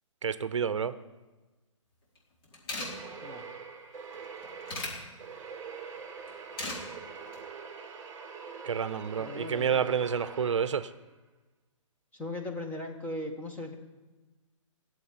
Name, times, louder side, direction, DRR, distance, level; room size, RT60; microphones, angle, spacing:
voice 1, 0.2-0.9 8.6-10.9, right 7 dB, 65° right, 14 dB, 0.7 m, -29 dB
sound 1, 2.2-2.3 2.4-2.9 4.1-4.9 6.3-6.8 7.2-7.4, left 2 dB, 45° left, 4.2 m, -36 dB
sound 2, 2.8-11.1, right 5 dB, 15° right, 1.7 m, -44 dB
voice 2, 9.2-9.9 12.1-13.7, left 1 dB, 10° left, 1 dB, 1.5 m, -38 dB
14.5 x 8.1 x 8.7 m, 1.2 s
hypercardioid pair, 140°, 17 cm